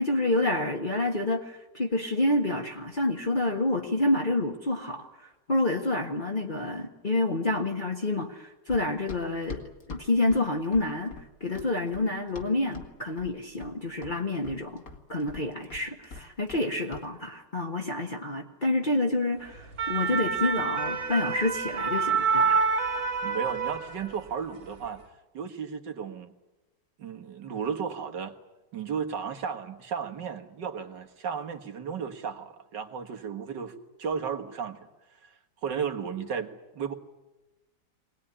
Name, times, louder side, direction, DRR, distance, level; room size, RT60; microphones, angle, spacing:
voice 1, 0.0-9.6 9.9-11.1 11.4-14.8 15.1-22.7, left 2 dB, 30° left, -1 dB, 1.5 m, -28 dB
Run, 8.7-12.9 13.2-13.8 14.0-16.6 16.9-17.1, left 4 dB, 55° left, 2.6 m, -43 dB
sound 1, 19.5-24.3 24.7-24.9, right 5 dB, 35° right, 1.9 m, -27 dB
voice 2, 23.2-25.0 25.3-26.3 27.0-28.3 28.7-34.8 35.2-36.5 36.7-36.9, right 6 dB, 85° right, 5 dB, 2.3 m, -34 dB
23.5 x 19.0 x 9.9 m, 1.0 s
omnidirectional pair, 1.8 m